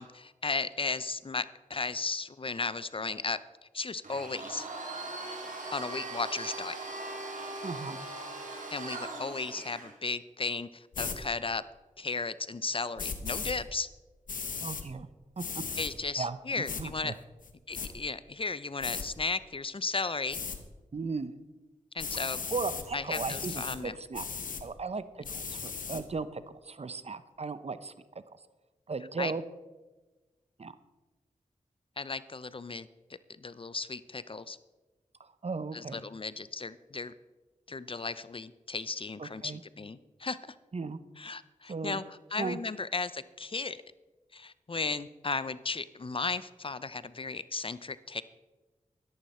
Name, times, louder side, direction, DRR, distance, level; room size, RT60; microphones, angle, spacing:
voice 1, 0.0-1.4 1.7-3.4 3.7-4.7 5.7-6.7 8.7-11.6 12.0-13.9 15.8-17.1 17.7-20.4 21.9-22.4 22.9-24.0 29.2-29.3 32.0-32.9 33.4-34.6 35.7-37.1 37.7-40.4 41.2-42.0 42.3-43.8 44.3-48.2, left 4 dB, 40° left, 16 dB, 0.6 m, -35 dB
Domestic sounds home sounds, 4.0-9.9, right 2 dB, 70° right, 3.3 m, -40 dB
voice 2, 7.6-8.0 14.6-15.1 15.4-15.6 16.2-17.1 20.9-21.3 22.5-24.3 24.6-27.9 28.9-29.4 30.6-30.7 35.2-36.0 39.2-39.6 40.7-41.0 41.7-42.0 42.4-42.6, right 4 dB, 50° right, 13 dB, 0.8 m, -36 dB
sound 1, 10.9-11.2 13.0-13.5 14.3-14.8 15.4-15.9 16.7-16.8 17.4-17.9 18.8-19.1 20.3-20.6 22.0-22.9 23.1-23.8 24.1-24.6 25.2-26.0, left 5 dB, 75° left, 1.2 m, -36 dB
12.5 x 11.5 x 4.3 m, 1.2 s
cardioid pair, 45°, 14 cm